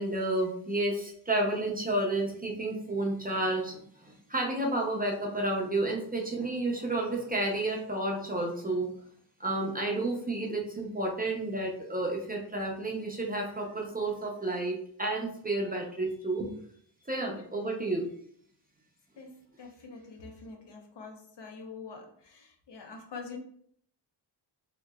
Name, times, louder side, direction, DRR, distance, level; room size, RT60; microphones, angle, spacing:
voice 1, 0.0-8.9 9.4-16.5 17.1-18.1, right 2 dB, 20° right, -1 dB, 0.5 m, -31 dB
voice 2, 19.2-23.4, left 4 dB, 70° left, 2 dB, 0.8 m, -45 dB
3.7 x 2.9 x 2.2 m, 0.62 s
wide cardioid pair, 145°, 44 cm